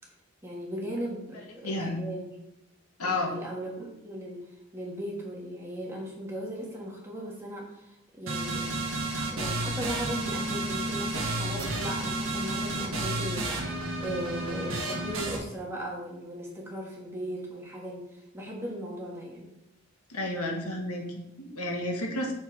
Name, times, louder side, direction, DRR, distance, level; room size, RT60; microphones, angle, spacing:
voice 1, 0.4-2.2 3.0-4.4 4.7-19.5, equal, 10° right, -3 dB, 1.4 m, -37 dB
voice 2, 1.6-2.0 3.0-3.3 20.1-22.3, left 2 dB, 85° left, 1 dB, 1.4 m, -31 dB
sound 1, 8.3-15.4, right 2 dB, 60° right, 1.3 m, -31 dB
7.3 x 4.2 x 4.7 m, 0.89 s
head